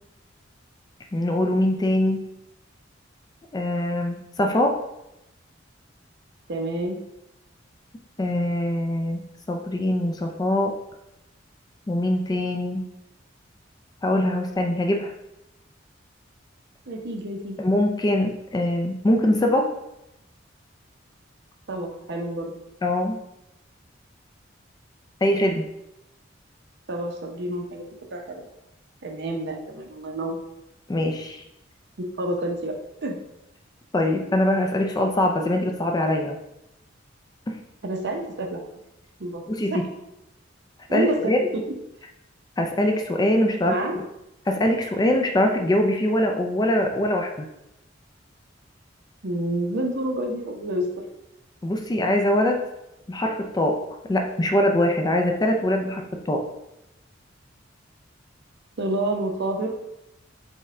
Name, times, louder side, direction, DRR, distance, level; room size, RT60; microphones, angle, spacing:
voice 1, 1.1-2.3 3.5-4.8 8.2-9.2 9.5-10.8 11.9-12.8 14.0-15.1 17.6-19.7 22.8-23.2 25.2-25.7 30.9-31.4 33.9-36.4 37.5-37.6 39.5-39.8 40.9-41.5 42.6-43.8 44.5-47.5 51.6-52.6 53.1-53.8 54.1-56.4, left 1 dB, 20° left, 3 dB, 0.4 m, -23 dB
voice 2, 6.5-7.0 16.9-17.6 21.7-22.5 26.9-28.5 29.0-30.4 32.0-32.8 33.0-33.2 37.8-38.6 39.2-39.4 39.7-39.8 40.9-41.6 43.6-44.0 49.2-50.9 58.8-59.7, right 1 dB, 60° right, 2 dB, 0.6 m, -28 dB
5.3 x 2.2 x 3.7 m, 0.87 s
head